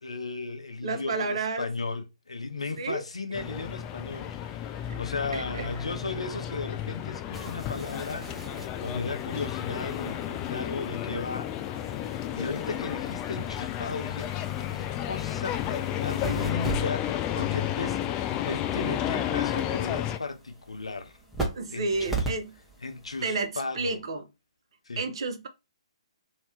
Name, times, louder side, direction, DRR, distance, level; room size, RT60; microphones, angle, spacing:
voice 1, 0.0-11.5 12.0-14.3 14.6-21.2 21.7-22.2 22.8-24.0 24.9-25.1, left 3 dB, 75° left, 0.6 m, -36 dB
voice 2, 0.8-1.7 2.8-3.0 4.8-5.0 5.3-5.9 16.2-16.3 21.5-22.5 23.2-24.3 25.0-25.5, right 3 dB, 55° right, 0.7 m, -31 dB
sound 1, 3.3-20.2, left 11 dB, 20° left, 0.3 m, -32 dB
sound 2, 7.3-23.5, right 3 dB, 5° right, 0.9 m, -40 dB
2.8 x 2.7 x 3.2 m
figure-of-eight pair, 130°, 3 cm